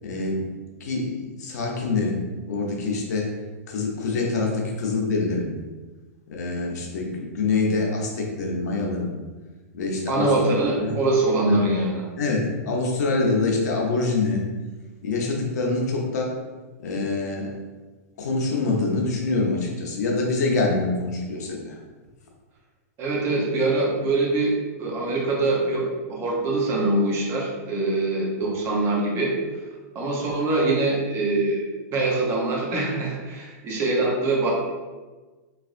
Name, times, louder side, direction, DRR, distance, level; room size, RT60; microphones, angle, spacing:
voice 1, 0.0-0.4 0.8-2.2 2.5-3.3 3.7-5.5 6.3-9.1 9.7-11.0 11.4-11.7 12.2-14.5 15.0-16.3 16.8-17.5 18.2-21.8, left 3 dB, 85° left, -1 dB, 0.7 m, -25 dB
voice 2, 10.1-12.0 23.0-24.5 24.8-29.3 29.9-34.5, right 2 dB, 30° right, -3 dB, 0.8 m, -23 dB
3.3 x 2.4 x 2.5 m, 1.3 s
supercardioid pair, 145°, 9 cm